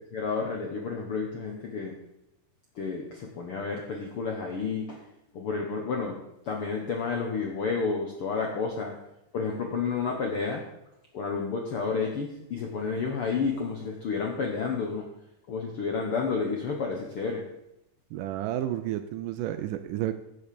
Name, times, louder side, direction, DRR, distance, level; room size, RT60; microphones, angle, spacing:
voice 1, 0.1-2.0 2.7-5.0 5.3-6.2 6.4-8.9 9.3-10.7 11.1-15.1 15.5-17.4, left 5 dB, 70° left, 1 dB, 1.3 m, -30 dB
voice 2, 18.1-20.1, right 12 dB, 80° right, 9 dB, 2.0 m, -31 dB
8.0 x 7.9 x 6.8 m, 0.87 s
omnidirectional pair, 4.1 m